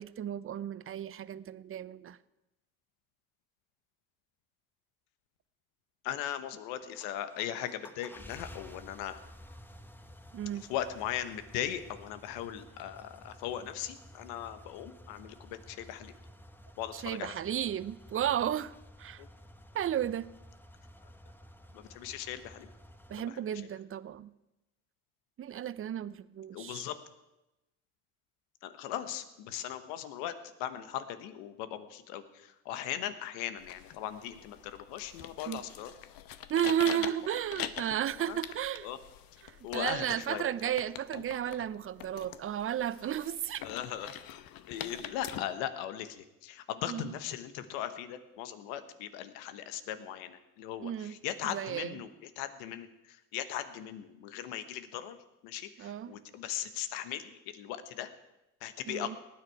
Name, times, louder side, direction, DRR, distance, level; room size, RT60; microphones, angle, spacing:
voice 1, 0.0-2.2 10.3-10.7 16.9-19.2 19.7-20.3 23.1-24.3 25.4-26.8 35.5-35.6 36.5-38.9 39.4-43.7 46.9-47.1 50.8-51.2 51.4-52.0 55.8-56.1 58.9-59.2, right 10 dB, 35° right, 0.6 m, -33 dB
voice 2, 6.0-9.2 10.7-16.1 16.8-17.3 19.2-19.3 21.7-22.7 23.1-23.4 26.5-26.9 28.6-30.3 30.6-35.9 37.0-37.1 38.1-38.4 38.8-39.0 39.6-40.7 43.6-44.1 44.7-55.2 55.4-58.1 58.6-59.2, left 11 dB, 85° left, 1.1 m, -39 dB
sound 1, 6.8-23.2, equal, 5° left, 1.0 m, -53 dB
sound 2, 33.6-45.4, left 11 dB, 65° left, 1.0 m, -44 dB
19.0 x 9.6 x 4.7 m
supercardioid pair, 75°, 37 cm